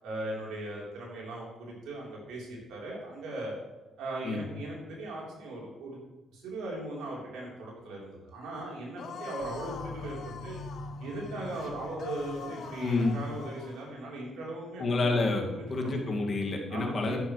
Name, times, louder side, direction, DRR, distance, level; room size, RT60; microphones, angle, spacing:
voice 1, 0.0-3.5 4.0-6.0 6.3-10.6 11.0-15.1 15.5-16.0 16.7-17.2, right 2 dB, 90° right, -3 dB, 3.9 m, -38 dB
sound 1, 9.0-13.9, left 6 dB, 65° left, 1.1 m, -45 dB
sound 2, 9.4-13.4, left 2 dB, 90° left, 2.1 m, -44 dB
voice 2, 12.8-13.1 14.8-15.4 15.7-17.2, left 3 dB, 45° left, 1 dB, 2.1 m, -28 dB
11.5 x 9.9 x 3.3 m, 1.1 s
cardioid pair, 90°, 0 cm